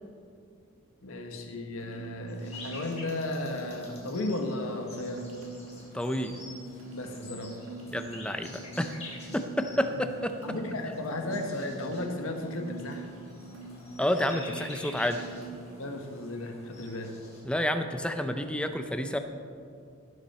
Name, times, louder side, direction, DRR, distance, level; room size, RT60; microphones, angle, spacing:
voice 1, 1.0-5.3 6.9-7.6 10.4-13.1 15.8-17.2, left 2 dB, 75° left, 3 dB, 1.4 m, -35 dB
sound 1, 1.8-15.8, right 3 dB, 75° right, 2.7 m, -45 dB
sound 2, 2.3-17.4, left 2 dB, 30° left, 3.2 m, -49 dB
voice 2, 5.9-6.4 7.9-9.0 9.3-10.3 14.0-15.2 17.5-19.2, left 1 dB, 5° left, 7 dB, 0.5 m, -29 dB
17.5 x 7.0 x 4.3 m, 2.3 s
head